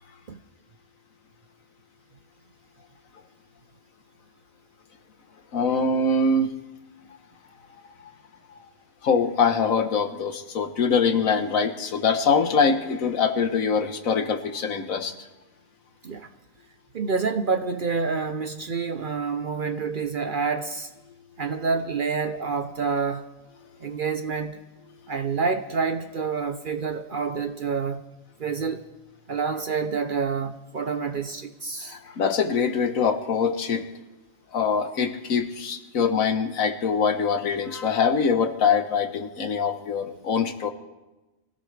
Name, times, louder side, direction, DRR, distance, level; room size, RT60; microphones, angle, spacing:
voice 1, 5.5-6.5 7.8-7.9 8.5-8.6 9.0-15.1 31.8-33.8 34.5-40.7, left 5 dB, 80° left, 1.6 m, -23 dB
voice 2, 16.9-20.9 21.4-23.2 23.8-24.6 25.1-28.0 28.4-28.8 29.3-32.0, right 5 dB, 50° right, 0.7 m, -28 dB
24.5 x 16.0 x 3.3 m
omnidirectional pair, 1.4 m